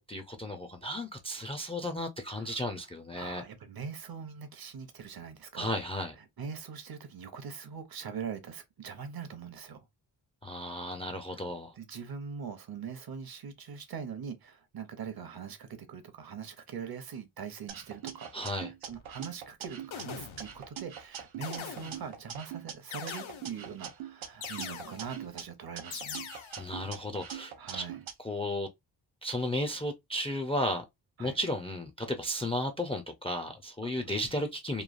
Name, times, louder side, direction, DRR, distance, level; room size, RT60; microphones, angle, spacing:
voice 1, 0.0-3.4 5.5-6.2 10.4-11.8 18.3-18.7 26.6-27.8 28.2-28.7 29.2-30.8 31.2-34.8, left 1 dB, 15° left, 0.3 m, -34 dB
voice 2, 3.1-5.7 6.4-9.8 11.3-11.5 11.8-18.3 18.6-26.3 27.6-28.0 31.2-31.4 33.8-33.9, right 6 dB, 55° right, 0.7 m, -42 dB
sound 1, 17.7-20.0 20.4-22.7 23.1-25.4 25.8-28.1, right 9 dB, 85° right, 0.7 m, -43 dB
sound 2, 18.9-19.1 19.9-20.7 21.4-22.2 22.9-23.7 24.4-25.2 25.9-26.7, left 8 dB, 85° left, 0.7 m, -42 dB
3.1 x 2.2 x 2.4 m
wide cardioid pair, 145°, 46 cm